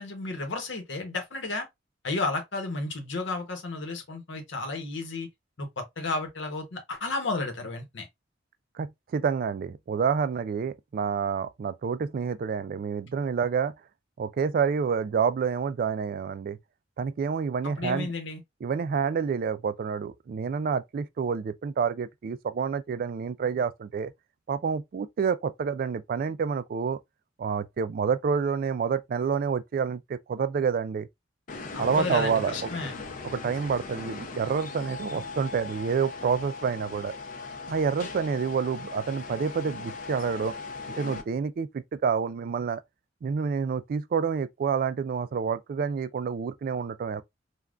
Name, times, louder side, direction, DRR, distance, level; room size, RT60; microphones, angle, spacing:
voice 1, 0.0-1.7 2.0-5.3 5.6-8.1 17.6-18.4 31.7-32.9, left 3 dB, 75° left, 0.9 m, -32 dB
voice 2, 8.8-13.7 14.2-16.6 17.0-18.1 18.6-24.1 24.5-27.0 27.4-31.1 31.8-32.6 33.2-37.1 37.7-40.5 41.0-42.8 43.2-47.2, right 6 dB, 50° right, 0.3 m, -28 dB
sound 1, 31.5-41.2, left 3 dB, 45° left, 0.5 m, -39 dB
3.4 x 2.3 x 2.4 m
head